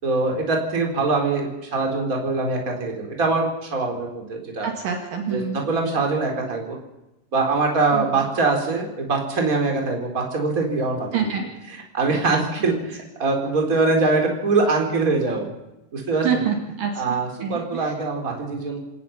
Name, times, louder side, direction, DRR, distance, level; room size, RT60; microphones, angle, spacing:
voice 1, 0.0-4.7 5.3-6.8 7.3-11.3 11.7-15.5 15.9-16.4 17.0-18.8, right 3 dB, 20° right, 1 dB, 4.0 m, -23 dB
voice 2, 4.6-5.6 7.9-8.2 11.1-11.5 16.2-17.1 17.4-17.9, right 7 dB, 60° right, 2 dB, 3.4 m, -26 dB
27.0 x 18.5 x 5.9 m, 0.97 s
omnidirectional pair, 4.8 m